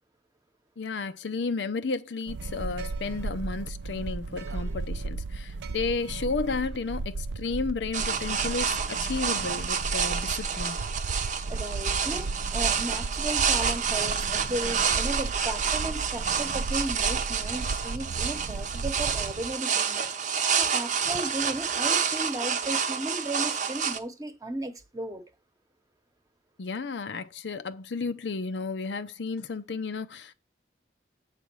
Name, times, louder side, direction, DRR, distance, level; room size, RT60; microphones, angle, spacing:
voice 1, 0.8-10.9 26.6-30.3, left 4 dB, 85° left, 0.6 m, -33 dB
sound 1, 2.3-19.6, right 3 dB, 85° right, 0.5 m, -35 dB
sound 2, 7.9-24.0, right 6 dB, 45° right, 0.7 m, -29 dB
voice 2, 11.5-25.2, right 1 dB, 20° right, 1.0 m, -35 dB
8.3 x 3.4 x 6.2 m
head